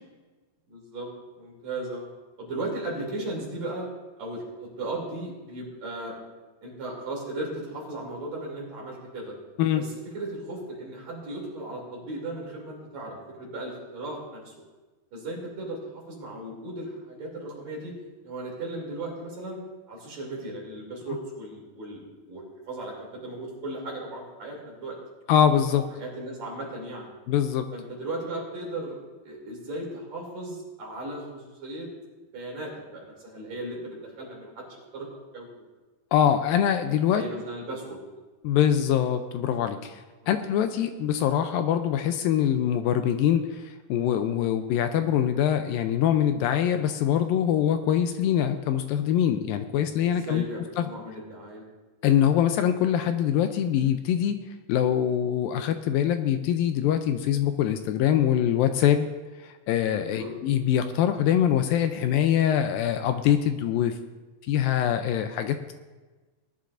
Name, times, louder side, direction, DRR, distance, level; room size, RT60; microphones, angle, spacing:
voice 1, 0.7-1.1 1.4-2.1 2.4-3.9 4.2-6.1 6.6-9.3 9.8-9.9 10.1-14.5 15.1-18.0 18.2-19.6 19.9-25.0 26.0-27.1 27.7-29.0 29.2-31.9 32.3-35.1 35.3-35.5 37.1-38.0 40.2-40.4 50.1-51.6 60.1-60.3, right 2 dB, 50° right, -2 dB, 4.1 m, -36 dB
voice 2, 25.3-25.9 27.3-27.7 36.1-37.2 38.4-40.0 40.3-50.4 50.8-50.9 52.0-54.4 54.7-59.1 59.4-64.0 64.5-65.7, left 10 dB, 80° left, 8 dB, 2.2 m, -24 dB
19.5 x 11.5 x 2.6 m, 1.2 s
omnidirectional pair, 4.3 m